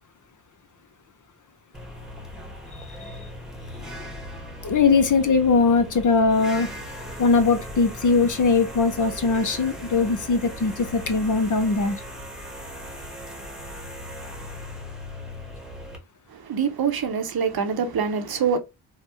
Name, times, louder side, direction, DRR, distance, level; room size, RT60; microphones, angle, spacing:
sound 1, 1.7-16.0, left 1 dB, ahead, 1.2 m, -38 dB
voice 1, 4.6-6.7 7.2-12.0, left 4 dB, 40° left, 0.6 m, -20 dB
voice 2, 16.3-18.6, right 6 dB, 50° right, 0.8 m, -25 dB
3.4 x 2.0 x 3.0 m
supercardioid pair, 40°, 48 cm